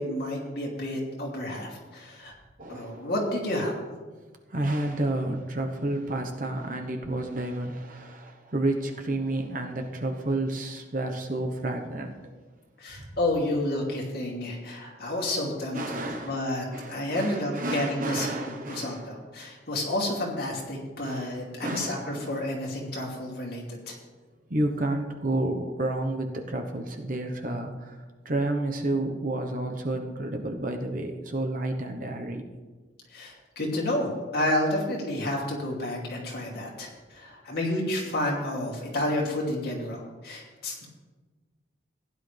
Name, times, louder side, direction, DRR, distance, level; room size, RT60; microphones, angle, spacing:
voice 1, 0.0-2.3 2.7-3.7 12.8-16.0 16.2-18.3 18.7-24.0 33.1-40.9, left 1 dB, 55° left, -2 dB, 2.8 m, -30 dB
voice 2, 2.6-3.1 4.5-12.1 13.0-13.2 15.7-19.1 21.0-21.4 21.6-22.3 24.5-32.4, right 2 dB, 45° right, 4 dB, 1.0 m, -30 dB
15.5 x 10.0 x 3.4 m, 1.3 s
head